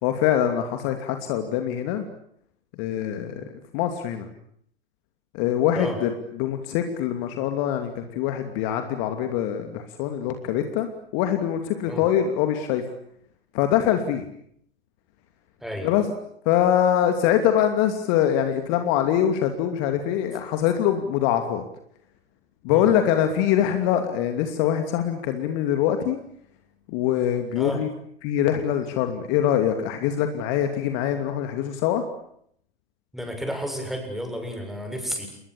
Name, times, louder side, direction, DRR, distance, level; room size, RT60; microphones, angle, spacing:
voice 1, 0.0-2.1 2.8-3.5 3.7-4.3 5.3-6.1 6.4-12.8 13.5-14.2 15.8-16.1 16.4-21.6 22.6-26.2 26.9-27.9 28.2-32.0, left 10 dB, 45° left, 7 dB, 2.8 m, -23 dB
voice 2, 33.1-35.3, equal, ahead, 3 dB, 7.5 m, -31 dB
30.0 x 21.0 x 8.5 m, 0.69 s
figure-of-eight pair, 90°, 29 cm